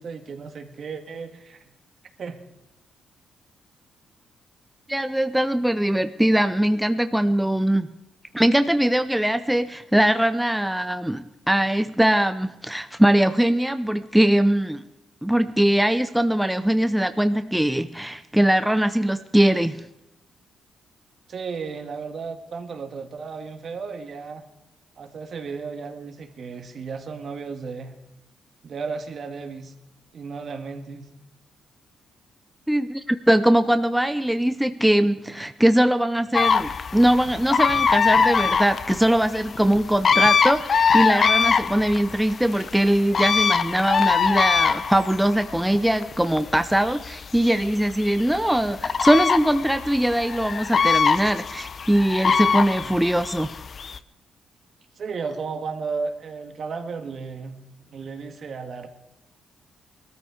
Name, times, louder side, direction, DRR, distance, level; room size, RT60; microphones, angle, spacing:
voice 1, 0.0-1.6 2.2-2.4 21.3-24.4 25.0-27.9 28.6-29.7 30.1-31.1 55.0-57.6 57.9-58.9, right 5 dB, 55° right, 6 dB, 1.8 m, -34 dB
voice 2, 4.9-7.9 8.3-14.8 15.2-19.8 32.7-53.6, right 1 dB, 5° right, 10 dB, 0.6 m, -21 dB
sound 1, 36.3-54.0, left 6 dB, 50° left, 0.6 m, -23 dB
19.5 x 13.5 x 5.0 m, 0.89 s
cardioid pair, 90°, 0 cm